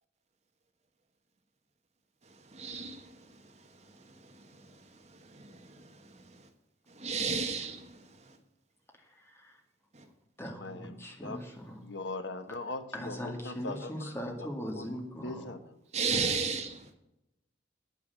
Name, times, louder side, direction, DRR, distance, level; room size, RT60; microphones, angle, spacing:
voice 1, 2.5-3.3 3.9-4.8 5.1-6.4 6.9-8.4 9.9-10.0 15.9-16.9, right 5 dB, 35° right, 6 dB, 1.3 m, -35 dB
voice 2, 9.0-9.6 10.4-11.8 12.5-12.6 12.9-15.5, equal, 15° left, 2 dB, 2.2 m, -40 dB
voice 3, 10.6-11.4 11.8-14.0 14.4-14.5 14.8-14.9 15.2-15.8, left 2 dB, 70° left, 10 dB, 1.1 m, -40 dB
9.6 x 9.4 x 7.4 m, 0.88 s
head